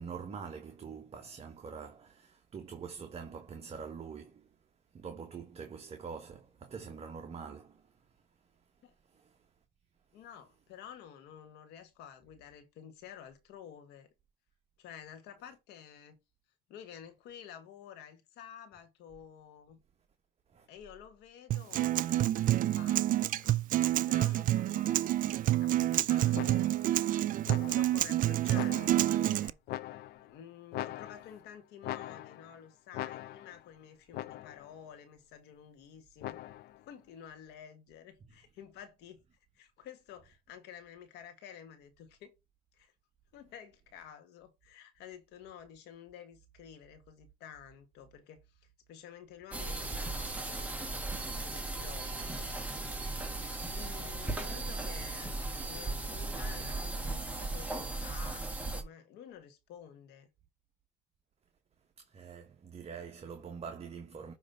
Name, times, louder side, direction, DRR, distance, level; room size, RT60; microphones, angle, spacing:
voice 1, 0.0-4.5 4.9-7.9 9.1-9.3 20.5-20.7 62.1-64.3, right 6 dB, 35° right, 1.1 m, -45 dB
voice 2, 10.1-14.1 14.8-16.2 16.7-19.8 20.7-23.6 24.1-25.3 25.6-26.8 27.4-29.6 30.2-36.4 36.8-39.2 39.6-42.3 42.7-42.9 43.3-48.4 48.9-52.6 53.7-60.3, left 9 dB, 90° left, 1.8 m, -51 dB
Acoustic guitar, 21.5-29.5, right 14 dB, 55° right, 0.4 m, -28 dB
sound 1, 26.3-26.9 27.5-28.1 28.5-29.2 29.7-30.3 30.7-31.5 31.8-32.6 32.9-33.6 34.1-34.7 36.2-36.8, left 14 dB, 70° left, 0.5 m, -42 dB
sound 2, 49.5-58.8, right 2 dB, 10° right, 1.5 m, -37 dB
9.9 x 3.3 x 5.4 m
cardioid pair, 110°, 17 cm